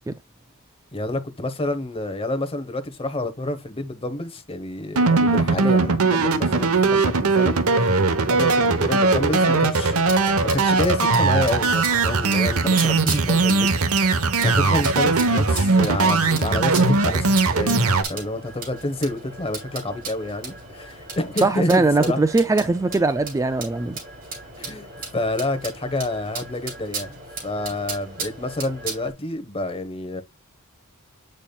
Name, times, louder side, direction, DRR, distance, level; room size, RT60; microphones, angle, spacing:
voice 1, 0.9-10.0 10.5-22.2 24.6-30.2, left 1 dB, 25° left, 1.1 m, -29 dB
sound 1, 5.0-18.0, right 3 dB, 70° right, 1.0 m, -19 dB
sound 2, 9.7-29.1, right 4 dB, 40° right, 2.9 m, -36 dB
voice 2, 21.4-24.0, right 3 dB, 15° right, 0.3 m, -20 dB
8.4 x 5.3 x 2.3 m
head